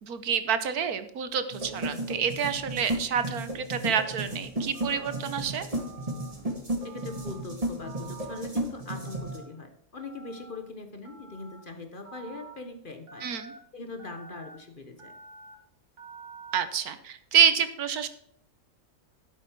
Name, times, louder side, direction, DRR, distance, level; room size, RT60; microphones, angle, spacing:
voice 1, 0.0-5.7 13.2-13.5 16.5-18.1, right 7 dB, 75° right, 11 dB, 1.5 m, -27 dB
sound 1, 1.5-9.4, right 1 dB, 25° right, 1.9 m, -34 dB
Telephone, 4.7-5.2 5.8-6.3 6.8-7.4 7.8-8.4 8.9-9.4 10.0-10.6 11.0-11.6 12.0-12.5 13.1-13.6 14.0-14.6 15.0-15.5 16.0-16.6, right 4 dB, 55° right, 2.2 m, -48 dB
voice 2, 6.8-13.3 13.7-15.1, left 3 dB, 35° left, 7 dB, 1.2 m, -41 dB
12.0 x 8.5 x 4.6 m, 0.69 s
omnidirectional pair, 1.6 m